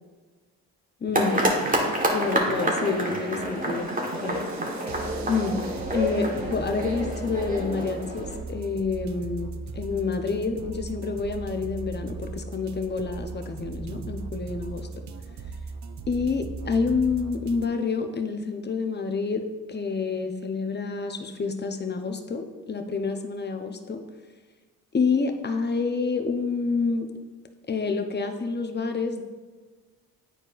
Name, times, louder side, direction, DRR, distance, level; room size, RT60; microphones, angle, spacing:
voice 1, 1.0-1.5 2.1-3.9 4.2-4.4 5.3-5.7 5.9-14.9 16.1-24.0 24.9-27.1 27.7-29.2, left 4 dB, 25° left, 5 dB, 0.8 m, -28 dB
sound 1, 1.1-8.4, right 1 dB, 20° right, 1.4 m, -28 dB
sound 2, 1.1-17.7, right 4 dB, 45° right, 0.5 m, -38 dB
9.9 x 4.4 x 2.5 m, 1.3 s
cardioid pair, 70°, 39 cm